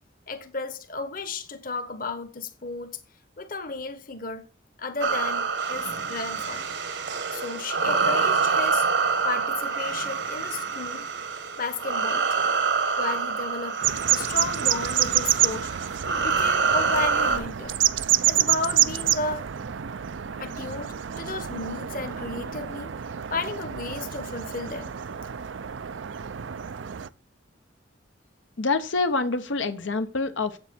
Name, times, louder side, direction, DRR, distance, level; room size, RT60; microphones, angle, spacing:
voice 1, 0.3-3.0 3.4-4.4 4.8-6.8 7.3-8.8 9.2-11.1 11.6-12.6 13.0-13.8 14.1-15.7 16.1-17.8 18.2-19.4 20.3-22.9 23.3-24.9, left 3 dB, 45° left, 1.1 m, -33 dB
sound 1, 5.0-17.4, right 5 dB, 70° right, 1.2 m, -26 dB
sound 2, 13.8-27.1, right 11 dB, 85° right, 0.5 m, -28 dB
voice 2, 28.6-30.6, left 3 dB, 90° left, 1.0 m, -26 dB
8.2 x 7.3 x 5.2 m
head